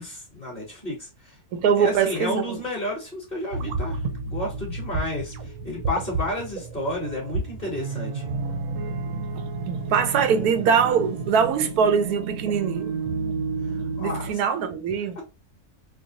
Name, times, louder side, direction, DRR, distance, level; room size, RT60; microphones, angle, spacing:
voice 1, 0.0-1.3 1.8-8.3 14.0-14.3 15.2-15.3, left 1 dB, 30° left, 2.0 m, -31 dB
voice 2, 1.5-2.6 9.4-13.0 14.0-15.2, right 6 dB, 90° right, 1.2 m, -23 dB
sound 1, 3.5-14.3, right 3 dB, 65° right, 1.0 m, -31 dB
4.6 x 2.2 x 2.6 m
omnidirectional pair, 1.6 m